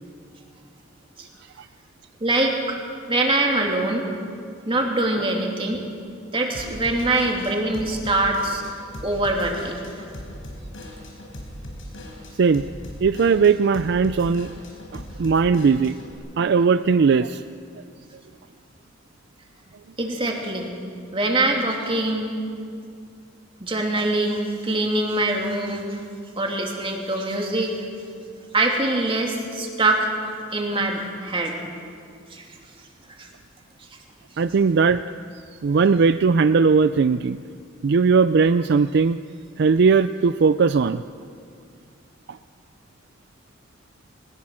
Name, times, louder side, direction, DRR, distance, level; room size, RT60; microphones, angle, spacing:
voice 1, 2.2-2.8 3.1-4.1 4.7-5.8 6.3-8.6 9.0-9.8 20.0-20.7 21.1-22.4 23.6-26.0 26.4-27.8 28.5-30.1 30.5-31.5 32.3-32.4 33.2-33.3, right 2 dB, 25° right, 1 dB, 2.6 m, -23 dB
Drum kit / Drum, 6.5-16.1, equal, 80° left, 4.5 m, -39 dB
voice 2, 13.0-14.5 14.9-16.0 16.4-17.4 34.4-35.0 35.6-37.4 37.8-39.2 39.6-41.0 42.3-42.4, right 5 dB, 60° right, 12 dB, 0.4 m, -18 dB
21.0 x 20.0 x 6.3 m, 2.3 s
head